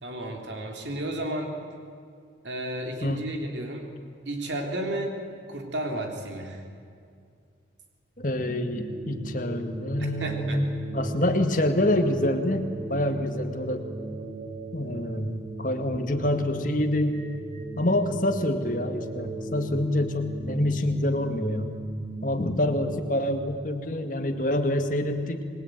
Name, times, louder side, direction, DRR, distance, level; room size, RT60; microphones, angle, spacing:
voice 1, 0.0-1.5 2.4-3.9 4.2-5.1 5.5-6.6 10.2-10.6, right 1 dB, 80° right, 3 dB, 3.4 m, -32 dB
voice 2, 8.2-12.6 12.9-13.8 14.7-17.2 17.8-21.7 22.2-25.4, left 1 dB, 45° left, 6 dB, 2.1 m, -26 dB
sound 1, 8.2-23.0, right 2 dB, 40° right, 5.6 m, -38 dB
26.5 x 21.0 x 9.2 m, 2.3 s
head